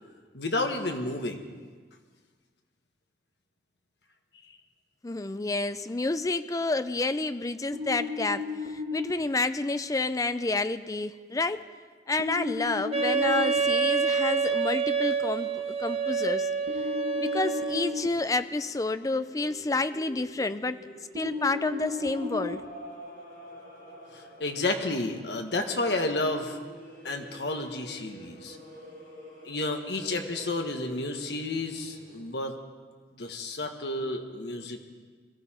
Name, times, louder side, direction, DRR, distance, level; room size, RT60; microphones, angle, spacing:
voice 1, 0.3-1.5 4.5-4.6 24.1-26.6 27.0-28.6 29.4-32.5 33.2-34.8, left 2 dB, 75° left, 4 dB, 1.5 m, -31 dB
voice 2, 5.0-11.6 12.1-16.5 17.2-20.8 21.1-22.6, left 3 dB, 20° left, 12 dB, 0.4 m, -29 dB
sound 1, 7.7-9.1 12.2-13.6 16.7-18.1 21.2-22.5, left 5 dB, 70° right, 1.8 m, -34 dB
Wind instrument woodwind instrument, 12.9-18.0, right 5 dB, 35° right, 1.2 m, -27 dB
sound 2, 17.2-32.2, equal, 50° left, 5.3 m, -48 dB
21.0 x 15.0 x 4.4 m, 1.5 s
head